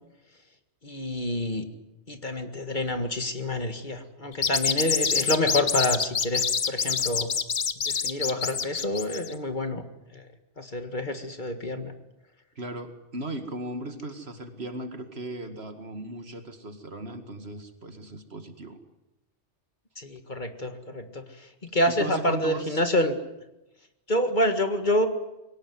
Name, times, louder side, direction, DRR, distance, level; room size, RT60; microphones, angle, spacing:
voice 1, 0.8-1.6 2.1-7.3 7.9-9.8 10.1-10.2 10.6-11.9 20.0-21.2 21.6-23.2 24.1-25.1, left 1 dB, 45° left, 8 dB, 2.0 m, -27 dB
sound 1, 4.3-9.3, left 6 dB, 60° left, 1.3 m, -26 dB
voice 2, 12.6-18.8 21.9-22.8, right 2 dB, 60° right, 8 dB, 2.4 m, -37 dB
22.5 x 18.5 x 9.5 m, 0.93 s
omnidirectional pair, 1.2 m